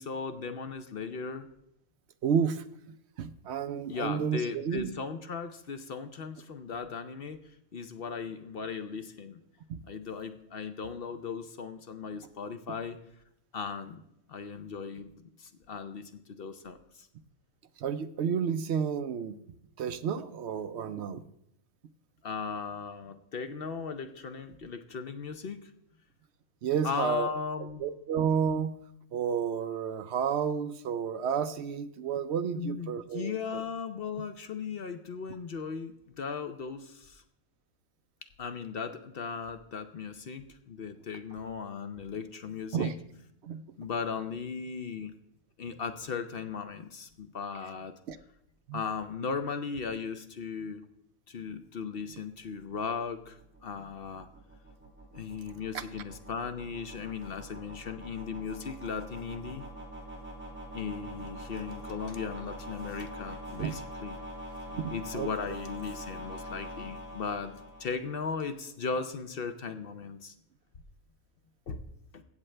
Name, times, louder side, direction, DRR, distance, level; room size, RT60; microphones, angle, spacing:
voice 1, 0.0-1.5 3.9-7.4 7.7-9.4 9.9-13.0 13.5-14.0 14.3-16.0 16.4-17.1 22.2-25.7 26.8-27.8 32.5-37.2 38.4-42.9 43.8-45.1 45.6-47.9 48.7-50.8 51.3-54.3 55.1-59.6 60.7-64.2 64.9-67.5 67.8-70.3 71.7-71.8 72.1-72.2, left 5 dB, 55° left, 9 dB, 0.7 m, -37 dB
voice 2, 2.2-2.6 3.2-4.9 9.7-9.8 17.8-19.4 19.8-21.2 26.6-27.3 27.8-28.7 29.1-33.6 42.7-42.9 43.4-43.6 48.1-48.2 48.7-48.8 55.7-55.8 63.6-63.7 64.7-65.6, right 7 dB, 65° right, 11 dB, 0.7 m, -31 dB
sound 1, 52.3-68.4, equal, 10° right, 2.4 m, -44 dB
15.5 x 7.6 x 3.3 m, 0.77 s
omnidirectional pair, 1.5 m